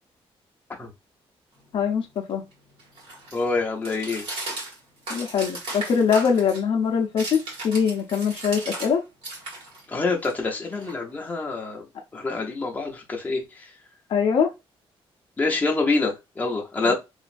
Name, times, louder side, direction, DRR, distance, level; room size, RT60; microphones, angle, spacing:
sound 1, 1.5-8.9 9.2-11.4, right 2 dB, 65° right, 1.9 m, -37 dB
voice 1, 1.7-2.5 5.1-9.0 14.1-14.5 16.8-16.9, left 6 dB, 60° left, 3 dB, 0.6 m, -23 dB
voice 2, 3.3-4.2 9.9-11.8 12.1-13.4 15.4-16.9, left 3 dB, 15° left, -1 dB, 0.7 m, -26 dB
3.0 x 2.5 x 2.5 m, 0.23 s
cardioid pair, 165°, 10 cm